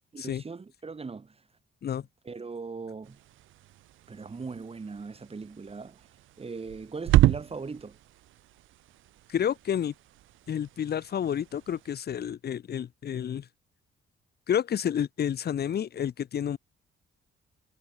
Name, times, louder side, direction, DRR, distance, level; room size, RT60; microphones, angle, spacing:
voice 1, 0.1-1.4 2.2-3.2 4.1-6.0 6.4-8.0, right 4 dB, 30° right, 5.5 m, -39 dB
sound 1, 3.0-11.9, right 15 dB, 85° right, 1.1 m, -31 dB
voice 2, 9.3-9.9 10.5-13.4 14.5-16.6, left 9 dB, 55° left, 1.4 m, -30 dB
cardioid pair, 90°, 20 cm